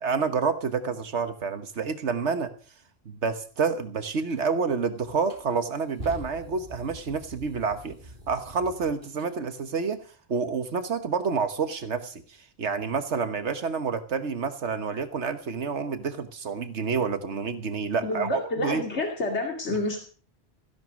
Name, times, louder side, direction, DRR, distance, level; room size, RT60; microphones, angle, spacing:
voice 1, 0.0-2.5 3.0-8.0 8.3-10.0 10.3-18.8, right 5 dB, 85° right, 10 dB, 1.5 m, -28 dB
sound 1, 4.3-4.4 5.0-9.3, equal, 50° right, 3.9 m, -44 dB
voice 2, 18.0-20.0, left 2 dB, 80° left, 2 dB, 2.7 m, -29 dB
16.0 x 11.5 x 6.3 m, 0.40 s
omnidirectional pair, 1.1 m